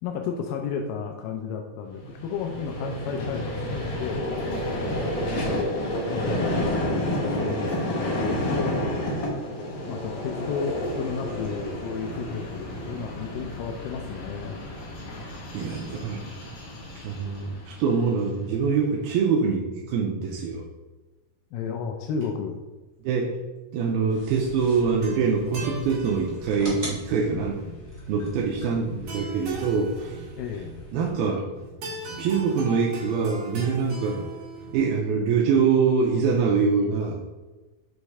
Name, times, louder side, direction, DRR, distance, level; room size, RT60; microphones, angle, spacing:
voice 1, 0.0-4.3 6.1-6.7 7.3-8.8 9.9-14.6 21.5-22.6 30.4-30.7, left 6 dB, 85° left, 2 dB, 1.9 m, -33 dB
Vehicle, 2.0-18.3, left 1 dB, 65° left, 1.8 m, -30 dB
voice 2, 15.5-16.2 17.0-20.6 23.0-23.4 23.7-27.6 28.1-30.2 30.9-31.5 32.2-34.2 34.7-37.2, right 5 dB, 85° right, -2 dB, 2.4 m, -24 dB
sound 1, 24.1-31.1, right 1 dB, 20° right, 0.5 m, -42 dB
sound 2, 24.8-34.9, right 2 dB, 65° right, 3.1 m, -39 dB
6.6 x 3.1 x 4.7 m, 1.2 s
omnidirectional pair, 4.4 m